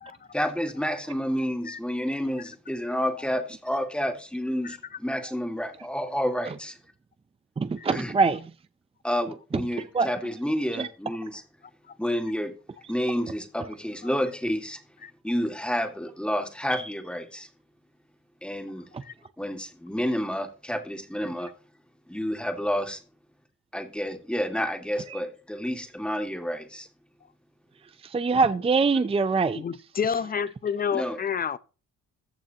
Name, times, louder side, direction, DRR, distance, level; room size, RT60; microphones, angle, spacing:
voice 1, 0.3-6.8 7.9-8.1 9.0-11.4 12.0-12.5 12.9-14.8 15.2-17.5 18.4-18.9 19.4-21.5 22.1-23.0 23.7-26.9 30.9-31.2, equal, 5° left, 2.1 m, -29 dB
voice 2, 7.6-8.4 9.9-10.1 10.8-10.9 18.9-19.0 25.1-25.2 28.1-29.6, right 4 dB, 20° right, 0.5 m, -23 dB
voice 3, 29.6-31.6, left 7 dB, 30° left, 0.6 m, -29 dB
14.5 x 8.9 x 2.9 m
cardioid pair, 90°, 30 cm